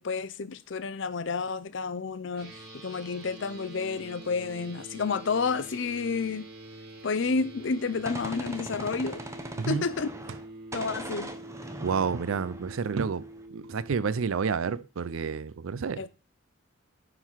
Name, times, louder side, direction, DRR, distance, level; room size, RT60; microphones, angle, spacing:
voice 1, 0.0-2.5 2.8-6.5 7.0-9.2 9.7-10.1 10.7-11.3 16.0-16.1, left 4 dB, 60° left, 0.5 m, -30 dB
sound 1, 2.3-14.2, right 2 dB, 50° right, 3.4 m, -46 dB
Gunshot gunfire, 7.6-10.5 10.7-13.4, right 1 dB, 15° right, 0.7 m, -41 dB
voice 2, 11.8-13.2 13.5-16.1, right 5 dB, 80° right, 0.5 m, -29 dB
9.8 x 4.0 x 4.5 m
head